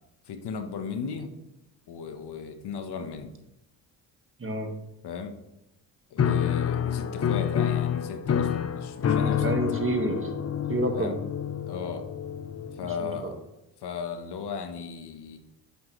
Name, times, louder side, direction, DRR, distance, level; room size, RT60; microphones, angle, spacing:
voice 1, 0.3-1.3 1.9-3.3 5.0-5.3 6.1-9.5 10.9-11.2 11.7-12.1 12.7-13.4 13.8-15.4, left 6 dB, 65° left, 7 dB, 1.2 m, -36 dB
voice 2, 4.4-4.7 9.2-10.3 10.7-11.1 13.0-13.3, right 2 dB, 30° right, 4 dB, 1.8 m, -29 dB
Piano, 6.2-13.0, left 8 dB, 35° left, 0.8 m, -28 dB
10.0 x 8.2 x 3.2 m, 0.91 s
supercardioid pair, 65°, 43 cm